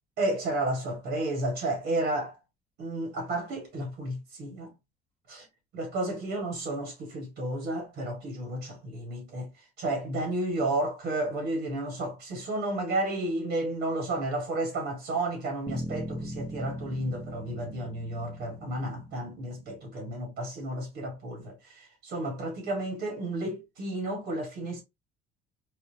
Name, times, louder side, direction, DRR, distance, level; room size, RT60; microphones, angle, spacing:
voice 1, 0.2-2.3 2.8-4.7 5.3-5.5 5.7-9.5 9.8-24.8, right 1 dB, 80° right, 1.8 m, -32 dB
sound 1, 15.7-20.0, right 1 dB, 20° right, 0.7 m, -41 dB
4.2 x 2.2 x 2.7 m
cardioid pair, 110°, 17 cm